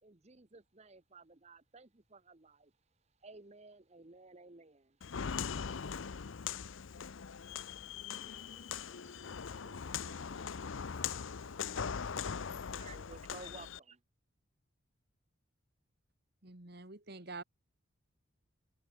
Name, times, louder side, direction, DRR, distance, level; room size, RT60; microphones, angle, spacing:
voice 1, 0.0-2.7 3.2-5.0 8.2-9.5 10.7-12.0 12.6-14.0, right 3 dB, 30° right, 1.0 m, -56 dB
Walk footsteps, 5.0-13.8, left 6 dB, 65° left, 0.6 m, -40 dB
voice 2, 9.1-11.2, right 2 dB, 85° right, 6.7 m, -65 dB
voice 3, 16.4-17.4, right 3 dB, 50° right, 2.1 m, -47 dB
head